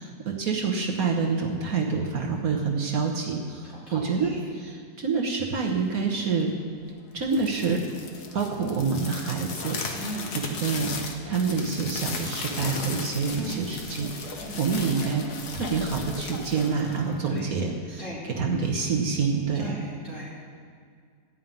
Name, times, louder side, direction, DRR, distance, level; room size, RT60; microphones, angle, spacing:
voice 1, 0.0-4.3 4.6-6.5 7.1-7.8 8.3-10.9 11.3-15.2 15.5-19.8, right 5 dB, 60° right, 0 dB, 1.5 m, -27 dB
voice 2, 3.6-4.5 9.9-10.4 13.3-13.7 14.4-14.6 17.2-17.5 18.0-18.3 19.5-20.6, equal, 40° left, -8 dB, 3.9 m, -38 dB
sound 1, 7.2-17.5, left 4 dB, 70° left, 1.6 m, -36 dB
13.5 x 5.6 x 9.1 m, 2.1 s
omnidirectional pair, 1.8 m